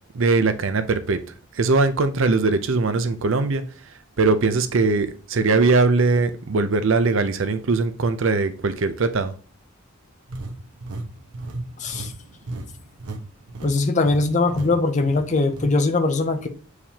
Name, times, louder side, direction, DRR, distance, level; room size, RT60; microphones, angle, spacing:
voice 1, 0.1-1.2 1.5-3.6 4.2-9.3, right 3 dB, 60° right, 10 dB, 0.5 m, -20 dB
sound 1, 10.3-13.2 13.5-13.7 14.1-14.2 14.5-14.7 15.0-15.7, right 2 dB, 90° right, 1.0 m, -34 dB
voice 2, 11.8-12.1 13.6-16.5, left 3 dB, 35° left, 7 dB, 0.5 m, -21 dB
7.2 x 4.8 x 2.8 m, 0.39 s
head